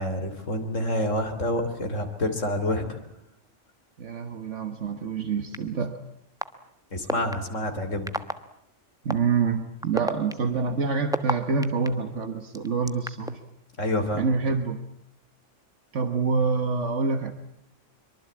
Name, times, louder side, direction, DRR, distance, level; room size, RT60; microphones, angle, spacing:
voice 1, 0.0-3.0 6.9-8.1 13.8-14.3, left 1 dB, 90° left, 6 dB, 3.6 m, -28 dB
voice 2, 4.0-6.0 9.0-13.4 14.1-14.9 15.9-17.3, right 5 dB, 75° right, 7 dB, 1.7 m, -26 dB
sound 1, 5.5-5.6 6.4-6.5 7.1-7.3 8.1-8.3 9.1-9.2 9.8-11.9 12.5-13.3, equal, 5° right, 1.1 m, -28 dB
24.0 x 23.5 x 8.6 m, 0.75 s
omnidirectional pair, 1.3 m